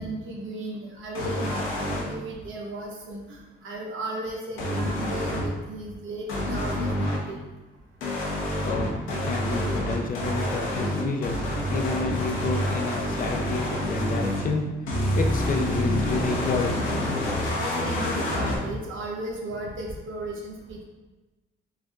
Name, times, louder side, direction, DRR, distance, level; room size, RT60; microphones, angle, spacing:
voice 1, 0.0-7.4 17.6-20.8, right 1 dB, 80° right, -1 dB, 1.0 m, -35 dB
sound 1, 1.2-2.0 4.6-5.5 6.3-7.2 8.0-14.5 14.9-18.6, left 1 dB, 85° left, 1.0 m, -27 dB
voice 2, 8.6-11.4 11.7-16.8, left 3 dB, 45° left, 3 dB, 0.6 m, -30 dB
4.5 x 3.3 x 2.4 m, 1.1 s
cardioid pair, 90°, 20 cm